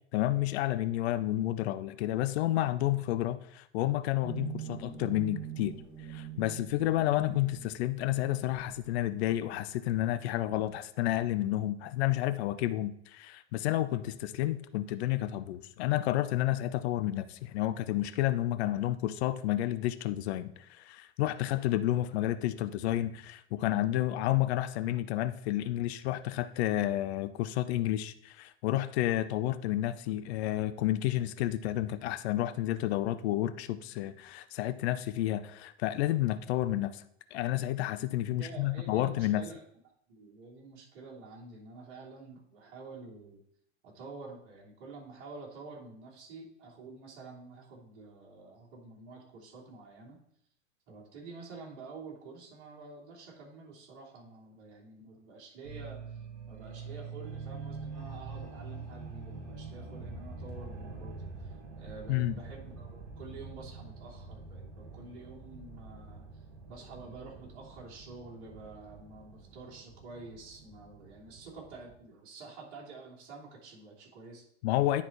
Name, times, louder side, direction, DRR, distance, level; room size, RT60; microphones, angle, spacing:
voice 1, 0.1-5.8 6.0-37.0 37.3-39.4 62.1-62.4 74.6-75.0, left 14 dB, 65° left, 12 dB, 0.6 m, -30 dB
sound 1, 4.2-9.5, right 10 dB, 5° right, 2.2 m, -44 dB
voice 2, 38.4-39.6 40.1-43.4 43.8-50.2 50.9-56.2 56.5-66.3 66.7-74.4, right 3 dB, 55° right, -4 dB, 3.3 m, -48 dB
sound 2, 55.6-72.0, right 4 dB, 75° right, 3.0 m, -45 dB
9.9 x 4.1 x 4.5 m, 0.70 s
hypercardioid pair, 90°, 35 cm